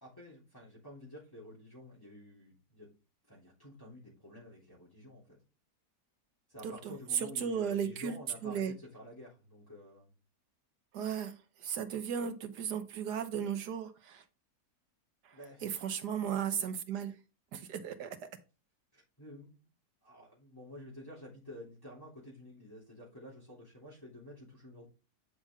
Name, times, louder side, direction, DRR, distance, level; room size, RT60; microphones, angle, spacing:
voice 1, 0.0-2.9 3.3-5.4 6.5-10.1 15.3-15.7 18.9-19.6 20.0-24.9, left 1 dB, 15° left, -7 dB, 3.1 m, -50 dB
voice 2, 7.4-8.2 8.4-8.7 10.9-11.3 11.6-14.2 15.6-17.1 17.5-18.2, right 8 dB, 90° right, 9 dB, 1.6 m, -35 dB
9.7 x 5.7 x 3.6 m, 0.30 s
omnidirectional pair, 1.7 m